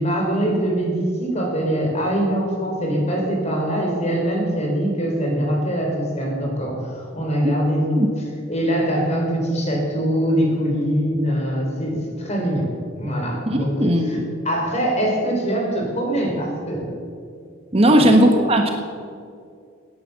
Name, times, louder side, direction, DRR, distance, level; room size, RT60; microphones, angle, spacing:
voice 1, 0.0-8.1 8.5-12.7 13.0-14.2 14.4-17.0 17.9-18.1, equal, 35° left, 0 dB, 4.2 m, -23 dB
voice 2, 13.5-14.3 17.7-18.7, right 1 dB, 30° right, 3 dB, 1.3 m, -17 dB
17.5 x 10.0 x 6.9 m, 2.2 s
head